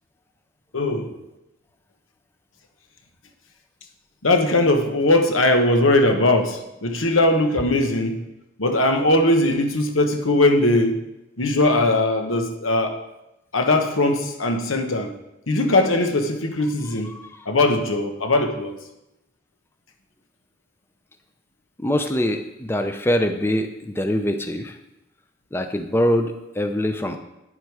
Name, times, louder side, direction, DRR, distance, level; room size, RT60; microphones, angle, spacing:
voice 1, 0.7-1.2 4.2-8.2 8.6-11.0 11.4-13.0 13.5-15.1 15.5-17.2 17.5-18.7, left 2 dB, 85° left, 6 dB, 1.2 m, -20 dB
voice 2, 21.8-24.8 25.5-27.2, equal, 10° left, 6 dB, 0.5 m, -23 dB
9.5 x 7.7 x 4.8 m, 0.93 s
head